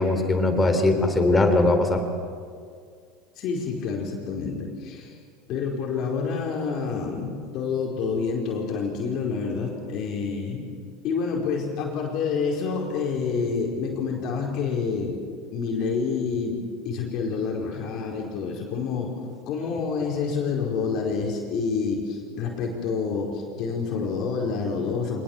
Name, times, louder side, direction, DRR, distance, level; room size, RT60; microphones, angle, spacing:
voice 1, 0.0-2.0, left 2 dB, 20° left, 7 dB, 3.8 m, -20 dB
voice 2, 3.4-5.2 5.5-10.7 11.0-15.2 15.5-16.6 16.8-19.1 19.5-25.2, left 5 dB, 55° left, 0 dB, 4.8 m, -28 dB
25.5 x 20.0 x 7.4 m, 2.1 s
hypercardioid pair, 80°, 0 cm